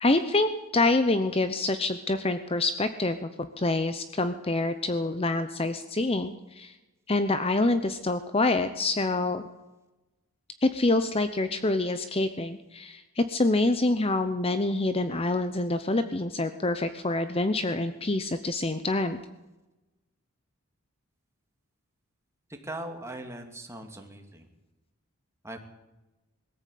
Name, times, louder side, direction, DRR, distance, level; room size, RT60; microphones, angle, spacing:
voice 1, 0.0-6.7 7.1-9.4 10.6-19.2, left 2 dB, 25° left, 10 dB, 0.8 m, -26 dB
voice 2, 22.6-24.5 25.4-25.6, right 1 dB, 10° right, 4 dB, 2.5 m, -39 dB
21.5 x 14.5 x 8.5 m, 1.1 s
head